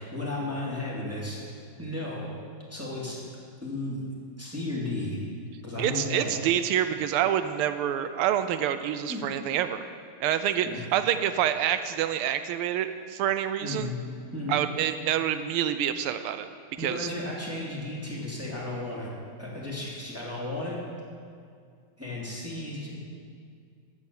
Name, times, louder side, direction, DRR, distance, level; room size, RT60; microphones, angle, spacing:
voice 1, 0.0-1.4 1.8-2.2 2.7-3.2 3.6-4.1 4.4-5.2 5.6-6.4 9.1-9.3 10.7-10.8 13.6-13.9 14.3-14.6 16.8-19.1 19.4-20.8 22.0-22.9, left 2 dB, 5° right, -6 dB, 2.7 m, -34 dB
voice 2, 5.8-9.9 10.2-13.9 14.5-16.5 16.8-17.1, right 10 dB, 90° right, 11 dB, 1.5 m, -27 dB
13.0 x 8.1 x 7.1 m, 2.2 s
omnidirectional pair, 2.4 m